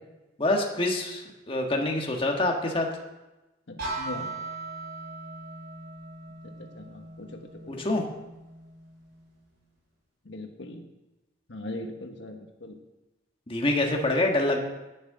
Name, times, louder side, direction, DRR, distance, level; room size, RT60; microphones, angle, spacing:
voice 1, 0.4-2.9 7.7-8.0 13.5-14.6, left 2 dB, 30° left, 1 dB, 1.4 m, -26 dB
voice 2, 3.7-4.3 6.7-7.4 7.8-7.9 10.2-10.8 11.5-12.7, left 1 dB, 80° left, 4 dB, 1.2 m, -39 dB
sound 1, 3.8-9.6, right 2 dB, 65° right, 3.9 m, -40 dB
10.5 x 6.5 x 7.7 m, 1.0 s
head